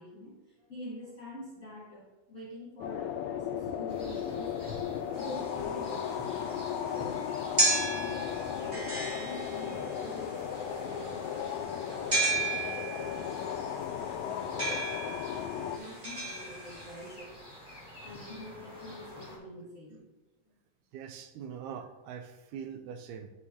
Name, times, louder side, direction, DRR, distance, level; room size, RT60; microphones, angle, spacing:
voice 1, 0.0-4.8 5.2-15.2 15.6-17.4 18.0-20.1, left 1 dB, 35° left, -5 dB, 1.3 m, -46 dB
sound 1, 2.8-15.8, left 9 dB, 80° left, 1.8 m, -36 dB
sound 2, 3.9-19.4, left 1 dB, ahead, 1.4 m, -48 dB
sound 3, 5.2-17.1, right 2 dB, 30° right, 0.7 m, -34 dB
voice 2, 20.9-23.3, right 7 dB, 85° right, 8 dB, 2.1 m, -42 dB
11.0 x 4.6 x 3.6 m, 1.1 s
omnidirectional pair, 3.6 m